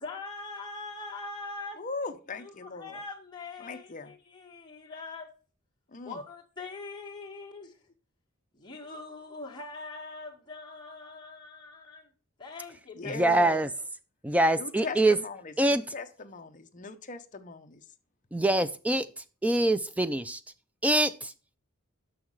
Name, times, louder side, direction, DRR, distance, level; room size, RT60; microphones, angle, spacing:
voice 1, 0.0-1.8 2.4-5.3 6.0-7.7 8.5-12.1 12.4-13.2 13.4-13.6, left 3 dB, 20° left, 1.7 m, -42 dB
voice 2, 1.8-3.0 3.6-4.1 5.9-6.2 13.0-13.7 14.6-17.8, left 4 dB, 35° left, 0.6 m, -39 dB
voice 3, 13.1-13.7 14.2-15.2 15.6-15.8 18.3-19.1 19.4-20.4 20.8-21.3, right 1 dB, 5° right, 0.3 m, -24 dB
6.3 x 5.8 x 4.6 m
head